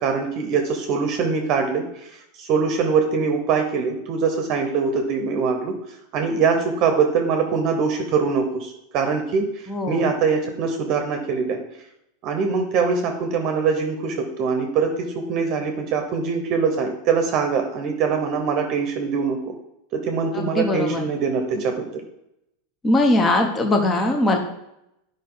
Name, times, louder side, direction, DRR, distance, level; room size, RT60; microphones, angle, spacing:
voice 1, 0.0-5.7 6.1-11.6 12.2-19.5 19.9-21.9, right 5 dB, 35° right, 4 dB, 0.9 m, -23 dB
voice 2, 9.7-10.1 20.3-21.0 22.8-24.4, left 2 dB, 15° left, 3 dB, 0.8 m, -20 dB
11.0 x 5.2 x 3.9 m, 0.83 s
supercardioid pair, 170°, 0 cm